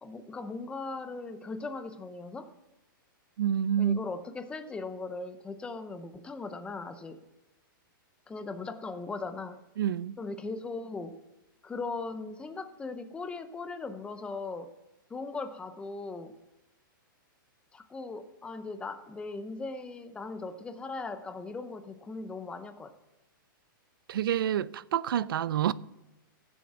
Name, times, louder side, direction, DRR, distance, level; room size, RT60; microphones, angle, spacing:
voice 1, 0.0-2.5 3.8-7.2 8.3-9.6 10.2-11.2 11.6-14.7 15.1-16.3 17.7-22.9, left 3 dB, 10° left, 0.7 m, -39 dB
voice 2, 3.4-4.0 9.8-10.2 24.1-25.7, right 9 dB, 80° right, 0.5 m, -28 dB
15.5 x 7.3 x 6.0 m
hypercardioid pair, 155°, 12 cm